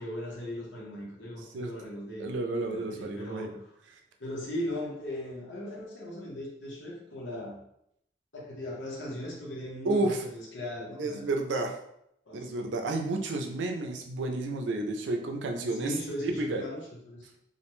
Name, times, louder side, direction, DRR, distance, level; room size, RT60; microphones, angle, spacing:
voice 1, 0.0-2.3 2.7-3.5 4.2-7.6 8.3-11.2 12.3-12.5 15.8-16.8 17.1-17.3, left 1 dB, 85° left, -3 dB, 0.8 m, -38 dB
voice 2, 2.2-3.5 9.8-10.2 11.0-11.7 12.3-15.9 16.2-16.6, right 2 dB, 80° right, 3 dB, 0.4 m, -31 dB
2.5 x 2.1 x 2.9 m, 0.76 s
head